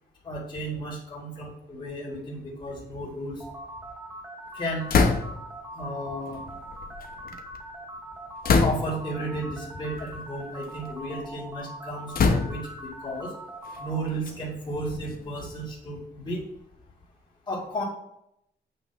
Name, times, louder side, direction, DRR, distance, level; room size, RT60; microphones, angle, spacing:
voice 1, 0.2-3.4 4.5-4.9 5.7-6.4 8.6-13.3 13.8-16.4 17.5-17.8, right 1 dB, 25° left, -7 dB, 2.2 m, -33 dB
sound 1, 3.4-14.0, right 1 dB, 10° right, 1.1 m, -41 dB
sound 2, 4.9-5.6 6.5-7.6 8.4-9.1 9.9-10.2 10.6-11.3 12.1-12.9 13.6-15.6, left 4 dB, 55° left, 0.9 m, -25 dB
8.8 x 3.1 x 5.9 m, 0.78 s
wide cardioid pair, 145°, 18 cm